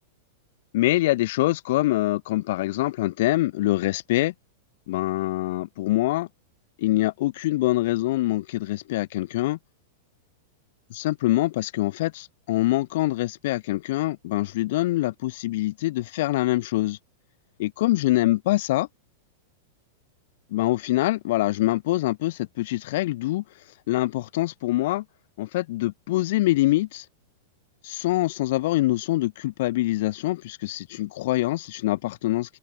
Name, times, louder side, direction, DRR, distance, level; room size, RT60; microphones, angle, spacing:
voice 1, 0.7-4.3 4.9-6.3 6.8-9.6 10.9-17.0 17.6-18.9 20.5-23.4 23.9-25.0 25.4-27.0 27.8-32.6, left 17 dB, 60° left, 1.1 m, -24 dB
supercardioid pair, 145°, 0 cm